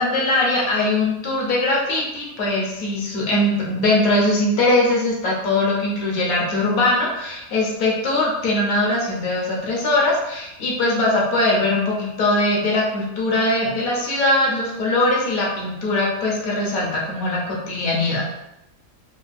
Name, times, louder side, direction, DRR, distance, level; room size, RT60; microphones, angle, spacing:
voice 1, 0.0-18.2, left 2 dB, 90° left, -3 dB, 1.2 m, -21 dB
4.4 x 2.5 x 2.2 m, 0.86 s
omnidirectional pair, 1.5 m